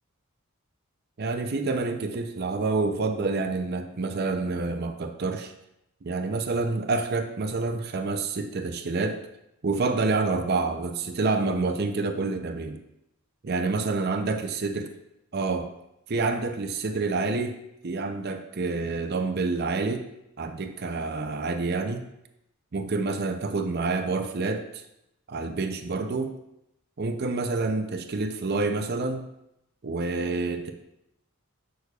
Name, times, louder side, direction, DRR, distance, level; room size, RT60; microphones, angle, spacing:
voice 1, 1.2-5.5 6.0-9.2 9.6-12.8 13.4-14.9 15.3-15.7 16.1-17.6 17.8-20.1 20.4-22.0 22.7-24.8 25.3-26.3 27.0-29.3 29.8-30.7, right 3 dB, 45° right, 6 dB, 0.5 m, -28 dB
8.0 x 6.3 x 2.4 m, 0.83 s
head